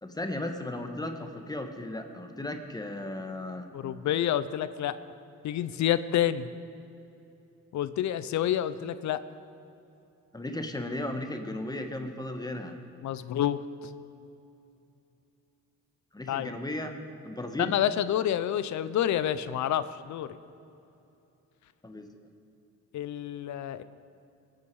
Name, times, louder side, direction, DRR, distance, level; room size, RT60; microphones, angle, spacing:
voice 1, 0.0-3.7 10.3-12.8 16.1-17.0 17.2-17.8 21.8-22.1, left 1 dB, 15° left, 5 dB, 1.3 m, -35 dB
voice 2, 3.7-5.0 5.4-6.5 7.7-9.2 13.0-13.6 16.3-16.5 17.6-20.3 22.9-23.8, left 11 dB, 70° left, 14 dB, 0.6 m, -28 dB
21.5 x 8.9 x 4.8 m, 2.8 s
cardioid pair, 90°, 30 cm